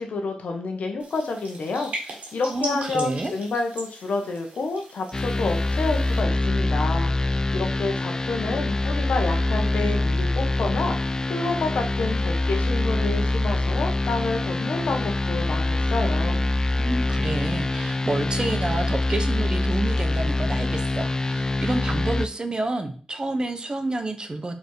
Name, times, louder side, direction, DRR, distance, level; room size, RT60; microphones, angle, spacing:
voice 1, 0.0-16.4, left 3 dB, 85° left, 3 dB, 1.2 m, -29 dB
sound 1, 1.0-6.2, right 2 dB, 90° right, 1.9 m, -39 dB
voice 2, 2.5-3.3 16.8-24.5, right 2 dB, 35° right, 7 dB, 1.0 m, -29 dB
sound 2, 5.1-22.3, left 2 dB, 30° left, 0.3 m, -24 dB
4.6 x 4.4 x 4.7 m, 0.42 s
cardioid pair, 70°, 2 cm